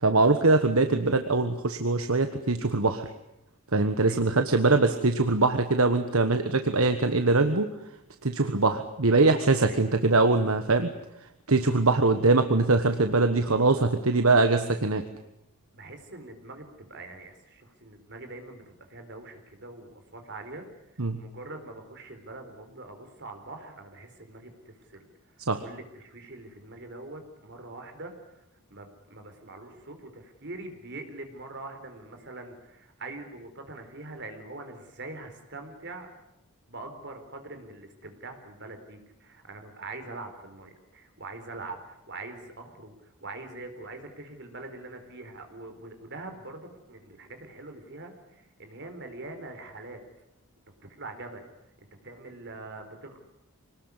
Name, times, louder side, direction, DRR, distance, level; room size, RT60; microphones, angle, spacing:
voice 1, 0.0-3.1 3.7-7.7 8.2-10.9 11.5-15.0 21.0-21.2 25.5-25.6, right 3 dB, 70° right, 8 dB, 1.4 m, -22 dB
voice 2, 15.7-20.7 21.2-25.1 25.6-28.4 28.7-36.1 36.7-50.0 51.0-51.4 51.8-53.3, right 2 dB, 55° right, 6 dB, 4.2 m, -43 dB
25.5 x 19.5 x 9.8 m, 0.85 s
head